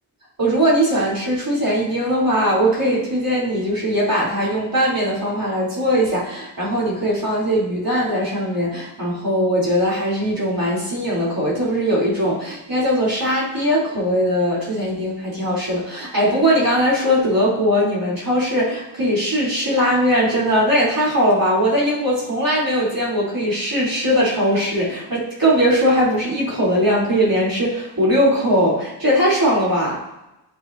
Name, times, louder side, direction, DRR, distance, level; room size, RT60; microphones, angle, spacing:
voice 1, 0.4-30.0, equal, 45° right, -6 dB, 2.9 m, -20 dB
10.5 x 6.0 x 2.5 m, 0.92 s
wide cardioid pair, 65°, 48 cm